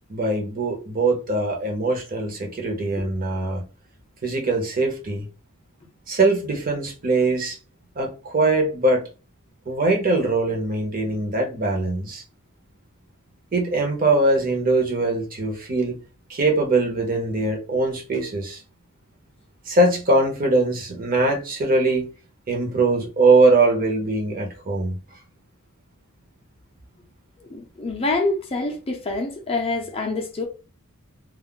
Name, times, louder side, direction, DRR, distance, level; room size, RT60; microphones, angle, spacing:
voice 1, 0.1-3.6 4.2-5.3 6.1-7.6 8.0-9.0 9.7-12.2 13.5-16.0 16.3-18.6 19.7-22.1 22.5-24.9, right 2 dB, 40° right, 0.7 m, -21 dB
voice 2, 27.5-30.5, left 2 dB, 25° left, 0.5 m, -26 dB
2.3 x 2.0 x 3.6 m
head